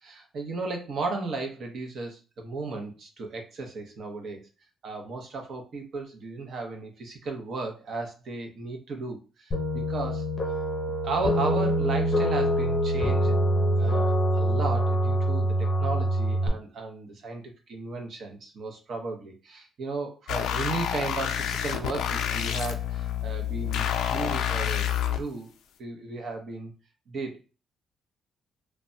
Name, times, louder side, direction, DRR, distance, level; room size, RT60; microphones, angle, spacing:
voice 1, 0.0-4.4 4.8-10.3 11.0-13.4 13.8-25.5 25.8-26.7 27.1-27.4, right 3 dB, 50° right, 3 dB, 0.8 m, -35 dB
sound 1, 9.5-16.5, equal, 30° left, 0.6 m, -25 dB
sound 2, 20.3-25.2, left 10 dB, 90° left, 0.3 m, -28 dB
3.2 x 2.2 x 2.6 m, 0.33 s
cardioid pair, 160°, 0 cm